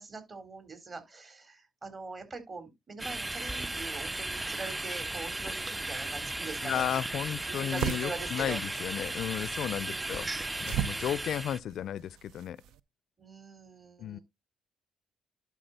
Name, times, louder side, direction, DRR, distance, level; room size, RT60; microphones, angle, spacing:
voice 1, 0.0-7.2 7.5-8.6 9.9-10.4 13.2-14.2, right 4 dB, 35° right, 3.7 m, -43 dB
sound 1, 3.0-11.6, right 2 dB, 15° right, 0.4 m, -36 dB
sound 2, 6.4-12.8, right 11 dB, 85° right, 0.5 m, -39 dB
voice 2, 6.6-10.3 10.6-12.6 14.0-14.2, left 10 dB, 70° left, 0.4 m, -34 dB
11.5 x 4.9 x 4.0 m
cardioid pair, 90°, 0 cm